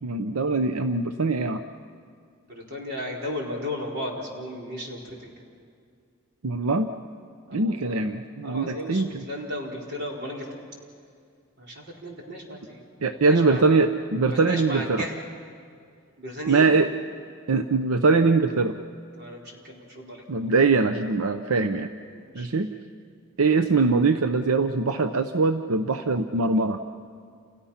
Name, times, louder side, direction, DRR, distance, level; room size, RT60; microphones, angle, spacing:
voice 1, 0.0-1.6 6.4-6.9 7.5-9.2 13.0-15.1 16.5-16.9 17.5-18.7 20.3-21.9 22.3-22.7 23.4-26.8, right 3 dB, 85° right, 8 dB, 0.8 m, -22 dB
voice 2, 2.5-5.3 7.5-8.1 8.4-10.6 11.6-12.8 13.2-13.7 14.2-15.2 16.2-16.7 19.2-20.5 22.1-22.5, equal, 50° right, -2 dB, 4.5 m, -35 dB
30.0 x 29.0 x 5.8 m, 2.2 s
head